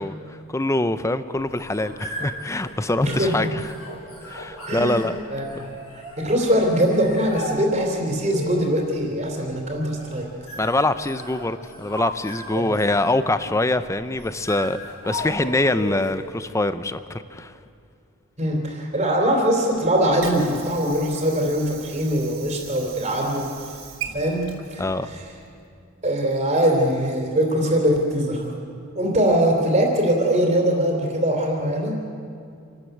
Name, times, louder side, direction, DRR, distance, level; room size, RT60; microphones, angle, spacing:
voice 1, 0.0-3.6 4.3-5.2 10.6-17.5 24.8-25.1, left 2 dB, 15° left, 12 dB, 0.6 m, -24 dB
sound 1, 1.4-16.3, left 1 dB, 75° left, 6.5 m, -37 dB
voice 2, 3.0-3.3 4.7-5.0 5.3-5.6 5.9-10.3 12.5-12.8 18.4-23.4 24.1-24.4 24.7-25.2 26.0-28.4 28.9-32.0, right 1 dB, 30° right, 1 dB, 3.2 m, -22 dB
Water / Sink (filling or washing), 19.7-25.7, right 7 dB, 60° right, 3.1 m, -40 dB
27.5 x 12.5 x 8.0 m, 2.4 s
head